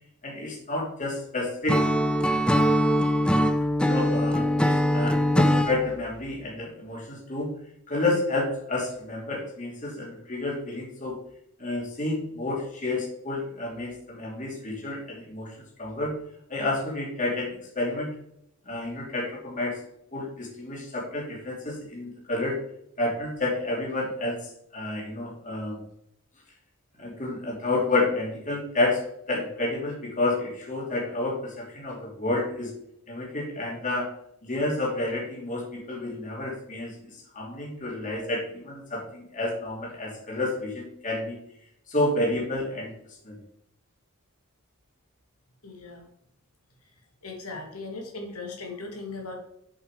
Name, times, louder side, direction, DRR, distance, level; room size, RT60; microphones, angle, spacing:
voice 1, 0.2-1.8 3.8-7.5 7.9-11.2 11.6-15.5 15.8-16.1 16.5-18.1 18.7-19.8 20.1-22.6 23.0-24.4 24.7-25.8 27.0-29.0 29.3-32.7 33.1-34.1 34.4-41.4 41.9-42.9 43.2-43.4, left 2 dB, 35° left, -3 dB, 2.9 m, -30 dB
Acoustic guitar / Strum, 1.7-5.8, equal, 5° left, 0.5 m, -22 dB
voice 2, 45.6-46.0 47.2-49.3, left 3 dB, 90° left, 1 dB, 2.5 m, -38 dB
8.0 x 7.6 x 4.9 m, 0.75 s
head